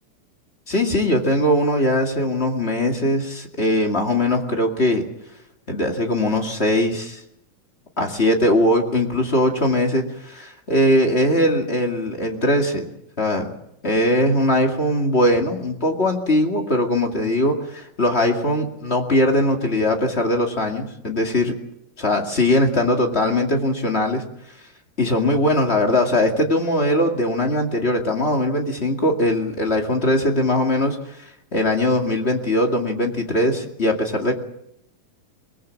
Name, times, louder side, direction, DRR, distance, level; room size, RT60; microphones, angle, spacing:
voice 1, 0.7-5.0 5.7-7.2 8.0-12.8 13.2-13.5 13.8-21.6 22.0-24.2 25.0-31.2 31.5-34.3, left 1 dB, 25° left, 2 dB, 1.9 m, -20 dB
23.0 x 19.5 x 7.5 m, 0.78 s
omnidirectional pair, 3.8 m